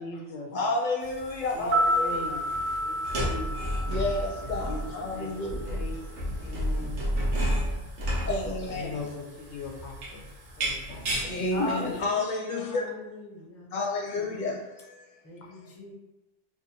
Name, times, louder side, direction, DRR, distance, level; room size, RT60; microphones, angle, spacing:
voice 1, 0.0-0.5 1.5-4.1 4.6-7.8 8.1-11.3, left 3 dB, 80° left, 1 dB, 0.9 m, -42 dB
voice 2, 0.5-2.4 3.9-5.8 7.4-7.5 8.3-8.9 11.2-12.9 13.7-15.1, left 2 dB, 45° left, -2 dB, 0.8 m, -30 dB
sound 1, 1.0-12.0, equal, 85° right, 1.2 m, -33 dB
sound 2, 1.6-5.7 6.0-6.1, equal, 50° right, 0.8 m, -30 dB
voice 3, 11.5-13.7 15.2-15.9, left 2 dB, 15° left, -4 dB, 0.6 m, -39 dB
4.3 x 2.5 x 2.7 m, 1.0 s
omnidirectional pair, 1.2 m